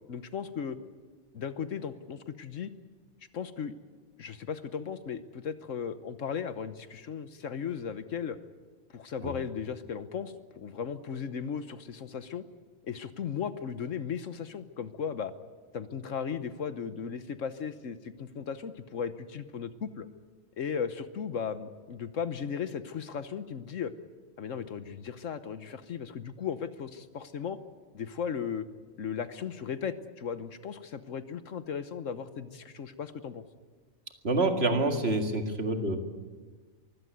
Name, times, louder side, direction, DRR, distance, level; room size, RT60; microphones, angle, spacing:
voice 1, 0.1-0.8 1.3-2.7 3.3-3.7 4.2-8.4 8.9-12.4 12.8-15.3 15.7-20.1 20.6-23.9 24.4-27.6 27.9-28.6 29.0-33.4, left 7 dB, 70° left, 12 dB, 1.3 m, -36 dB
voice 2, 34.2-36.0, right 2 dB, 50° right, 5 dB, 2.3 m, -27 dB
24.0 x 16.0 x 9.3 m, 1.4 s
omnidirectional pair, 1.4 m